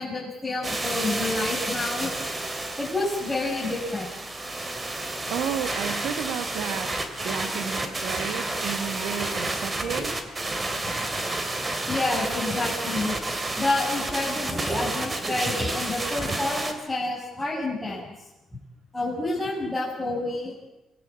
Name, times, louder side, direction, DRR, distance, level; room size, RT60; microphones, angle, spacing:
voice 1, 0.0-2.3 2.8-4.1 11.9-13.2 13.6-18.0 18.9-20.7, left 2 dB, 10° left, -8 dB, 7.6 m, -29 dB
sound 1, 0.6-16.7, right 2 dB, 25° right, 3.6 m, -30 dB
voice 2, 5.3-6.9 7.2-10.1, right 8 dB, 90° right, 9 dB, 2.5 m, -32 dB
27.0 x 21.0 x 8.8 m, 0.94 s
cardioid pair, 90°, 0 cm